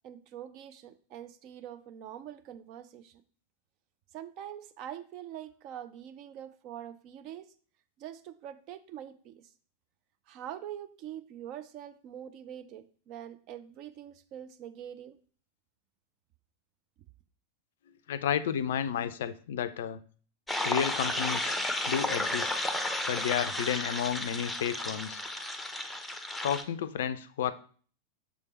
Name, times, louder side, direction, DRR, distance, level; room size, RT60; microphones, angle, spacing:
voice 1, 0.0-3.2 4.1-7.5 8.0-9.5 10.3-15.2, right 10 dB, 40° right, 11 dB, 0.5 m, -44 dB
voice 2, 18.1-20.0 20.6-22.5 23.1-25.2 26.4-27.5, left 9 dB, 60° left, 13 dB, 0.4 m, -32 dB
sound 1, 20.5-26.6, left 1 dB, 5° left, 0.7 m, -33 dB
6.6 x 3.5 x 4.1 m, 0.43 s
figure-of-eight pair, 90°, 0 cm